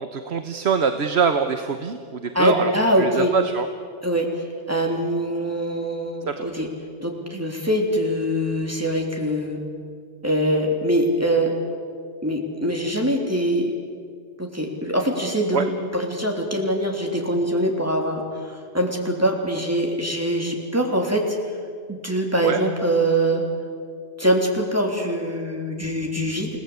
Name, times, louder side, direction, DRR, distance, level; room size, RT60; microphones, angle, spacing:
voice 1, 0.0-2.7 3.0-3.7 6.3-6.6 15.5-15.7 22.4-22.6, right 6 dB, 80° right, 8 dB, 1.3 m, -24 dB
voice 2, 2.3-3.3 4.0-4.3 4.7-6.7 7.0-9.6 10.2-11.5 12.2-13.7 14.4-21.4 21.9-23.4 24.2-26.5, right 1 dB, 15° right, 1 dB, 3.5 m, -23 dB
29.0 x 19.0 x 8.3 m, 2.1 s
omnidirectional pair, 1.1 m